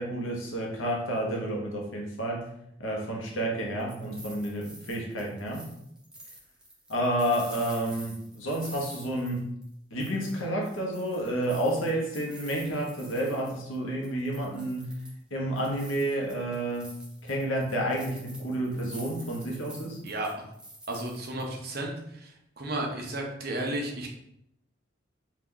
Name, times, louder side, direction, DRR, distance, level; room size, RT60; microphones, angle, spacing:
voice 1, 0.0-2.5 2.8-5.6 6.9-9.5 9.9-14.9 15.3-16.9 17.2-20.0, right 1 dB, 90° left, -1 dB, 0.8 m, -30 dB
sound 1, 3.6-9.7 10.0-13.8 14.0-15.2 15.5-21.7, right 1 dB, 5° right, 0.4 m, -48 dB
voice 2, 20.9-21.9 22.6-24.1, right 1 dB, 50° right, 1 dB, 0.6 m, -32 dB
2.8 x 2.3 x 3.6 m, 0.76 s
head